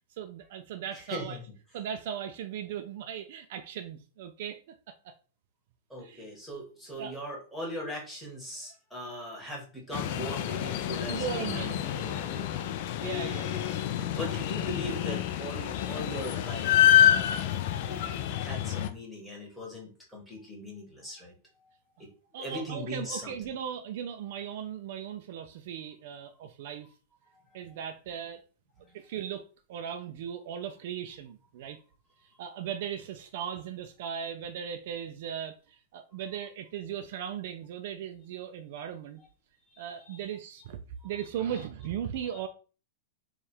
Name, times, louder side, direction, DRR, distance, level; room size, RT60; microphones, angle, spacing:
voice 1, 0.2-1.4 1.7-5.1 6.0-6.3 7.0-7.2 11.1-12.3 13.0-13.9 22.3-26.9 27.5-28.4 28.9-31.8 32.4-39.2 39.8-42.5, right 9 dB, 55° right, 0.4 m, -38 dB
voice 2, 1.1-1.4 5.9-11.7 12.0-12.7 14.1-17.5 17.9-21.3 22.0-22.1 22.4-23.3 28.8-29.0 39.7-40.2, equal, ahead, 1.4 m, -40 dB
sound 1, 9.9-18.9, left 11 dB, 50° left, 0.4 m, -27 dB
3.3 x 2.4 x 4.3 m
supercardioid pair, 160°, 0 cm